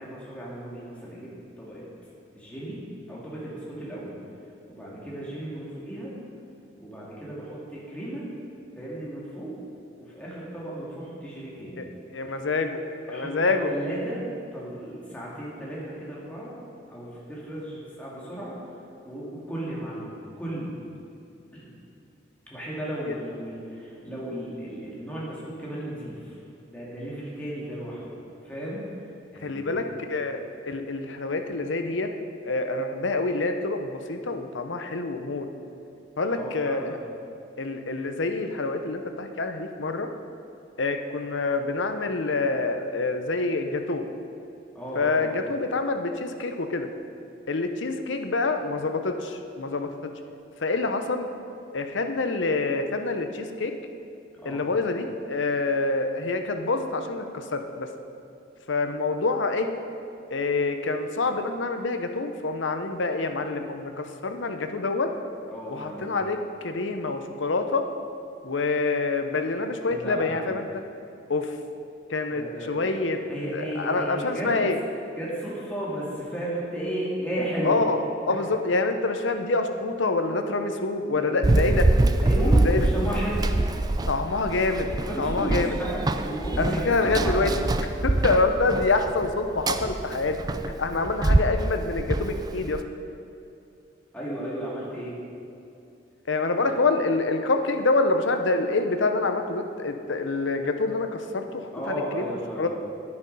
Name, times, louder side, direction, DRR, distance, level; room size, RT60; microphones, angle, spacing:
voice 1, 0.0-1.8 2.3-2.8 3.1-4.2 4.7-6.1 6.8-8.3 8.8-9.5 10.0-11.8 13.1-13.4 13.7-14.2 14.5-16.6 16.9-18.6 19.0-20.7 21.5-21.7 22.5-28.1 28.4-28.9 29.3-30.0 36.3-36.9 44.7-45.4 54.4-54.6 65.5-66.1 69.9-70.4 72.3-72.8 73.3-74.5 75.2-77.8 78.3-78.4 81.1-81.8 82.2-83.5 85.0-87.6 90.9-91.0 94.1-95.2 96.6-96.8 101.7-102.7, right 1 dB, 5° left, -7 dB, 2.2 m, -34 dB
voice 2, 12.1-12.8 13.1-13.7 23.1-23.2 29.4-30.4 30.7-32.1 32.4-35.5 36.2-37.0 37.6-40.1 40.8-44.0 44.9-46.9 47.5-49.9 50.6-51.3 51.7-53.7 54.4-57.9 58.7-59.7 60.3-65.1 65.7-66.4 66.6-67.9 68.4-70.6 71.3-71.6 72.1-73.2 73.5-74.8 77.6-78.0 78.3-81.8 82.6-82.8 84.1-85.8 86.6-87.5 88.0-90.4 90.8-92.8 96.3-102.3 102.6-102.7, left 3 dB, 85° left, 6 dB, 0.8 m, -26 dB
Run, 81.4-92.8, right 2 dB, 20° right, 0.3 m, -25 dB
9.8 x 9.7 x 5.4 m, 2.6 s
head